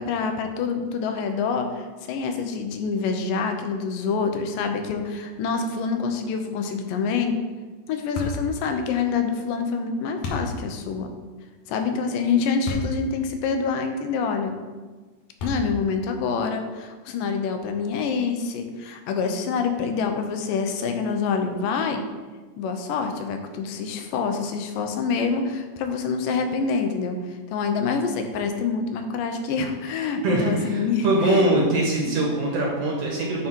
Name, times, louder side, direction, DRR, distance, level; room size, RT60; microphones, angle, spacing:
voice 1, 0.0-7.4 7.9-11.1 11.7-14.5 15.4-22.1 22.6-31.7 32.0-32.2, left 5 dB, 90° left, 6 dB, 2.4 m, -26 dB
sound 1, 8.2-8.5 10.2-10.5 12.7-13.0 13.6-13.7 15.4-15.9, left 3 dB, 65° left, 2.3 m, -29 dB
voice 2, 30.2-33.5, right 2 dB, 65° right, -2 dB, 1.7 m, -22 dB
9.9 x 3.7 x 4.4 m, 1.4 s
omnidirectional pair, 3.8 m